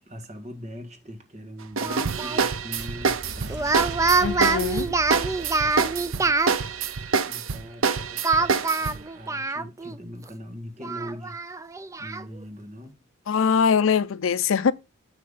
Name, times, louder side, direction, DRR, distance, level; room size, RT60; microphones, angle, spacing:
voice 1, 0.1-3.7 4.9-6.5 6.9-11.4 12.0-13.0, equal, 30° right, 1.6 m, -42 dB
Speech, 1.8-2.4 3.5-6.5 8.2-10.0 10.3-10.4 10.8-12.2, right 3 dB, 15° right, 0.3 m, -25 dB
sound 1, 1.8-9.0, right 5 dB, 80° right, 0.7 m, -27 dB
sound 2, 1.9-7.0, right 1 dB, 50° right, 0.9 m, -41 dB
voice 2, 4.2-4.9 13.3-14.7, left 6 dB, 75° left, 0.5 m, -22 dB
9.8 x 3.4 x 5.5 m
head